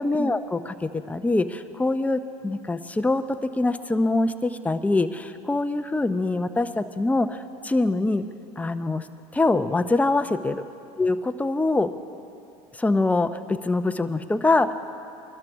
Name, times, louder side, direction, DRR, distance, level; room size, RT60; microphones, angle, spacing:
voice 1, 0.0-8.2 8.6-9.0 9.3-10.6 11.0-11.9 12.8-14.7, left 2 dB, 10° left, 9 dB, 0.6 m, -24 dB
22.0 x 12.5 x 3.6 m, 2.6 s
supercardioid pair, 90°, 16 cm